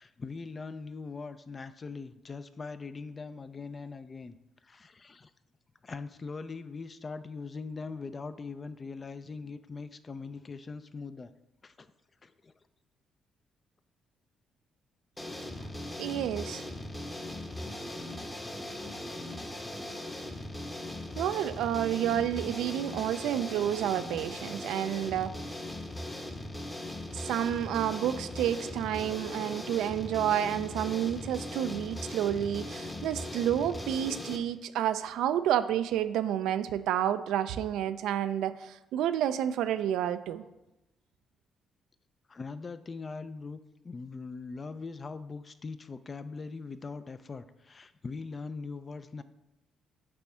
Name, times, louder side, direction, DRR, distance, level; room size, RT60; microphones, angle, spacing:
voice 1, 0.0-4.4 4.6-5.3 5.8-11.3 11.6-11.9 12.2-12.5 37.9-38.0 42.3-43.6 43.8-49.2, left 4 dB, 35° left, 12 dB, 0.4 m, -41 dB
sound 1, 15.2-34.4, left 1 dB, 15° left, 0.9 m, -39 dB
voice 2, 16.0-16.6 21.2-25.3 27.1-40.4, right 10 dB, 85° right, 11 dB, 0.4 m, -30 dB
8.4 x 3.5 x 4.3 m, 0.97 s
cardioid pair, 90°, 0 cm